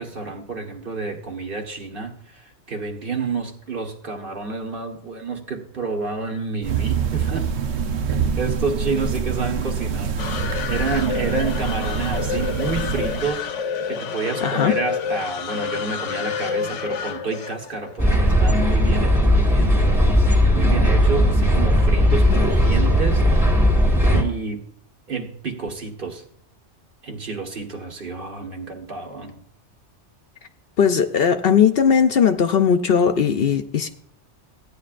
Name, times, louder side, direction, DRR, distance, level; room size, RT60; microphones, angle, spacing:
voice 1, 0.0-7.5 8.2-13.5 13.9-23.3 24.1-24.7 25.1-26.2 27.0-29.4, right 4 dB, 50° right, 1.6 m, -29 dB
sound 1, 6.6-13.3, right 6 dB, 70° right, 1.0 m, -25 dB
sound 2, 10.2-18.6, left 6 dB, 90° left, 1.0 m, -29 dB
voice 2, 14.4-14.8 30.8-33.9, left 7 dB, 60° left, 0.8 m, -18 dB
sound 3, 18.0-24.2, equal, ahead, 1.6 m, -17 dB
15.5 x 10.0 x 2.5 m
omnidirectional pair, 1.2 m